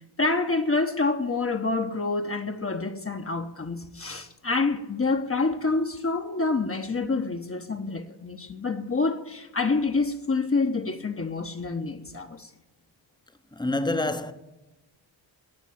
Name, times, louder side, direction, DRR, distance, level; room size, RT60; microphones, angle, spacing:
voice 1, 0.2-12.5, left 3 dB, 30° left, 1.1 m, -27 dB
voice 2, 13.5-14.3, left 2 dB, 10° left, 1.0 m, -27 dB
19.5 x 6.9 x 8.6 m
cardioid pair, 90°, 47 cm